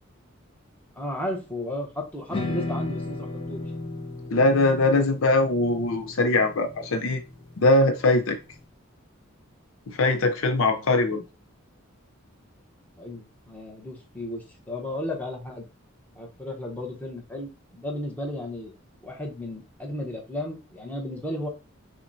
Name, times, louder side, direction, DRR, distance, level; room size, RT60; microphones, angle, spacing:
voice 1, 0.9-3.6 10.6-10.9 13.0-15.6 16.1-18.7 19.0-21.5, left 1 dB, 10° left, 0.9 m, -34 dB
sound 1, 2.3-8.6, left 2 dB, 25° left, 0.6 m, -35 dB
voice 2, 4.3-7.2 7.6-8.4 9.9-11.2, left 2 dB, 75° left, 0.5 m, -21 dB
5.9 x 2.1 x 2.6 m
head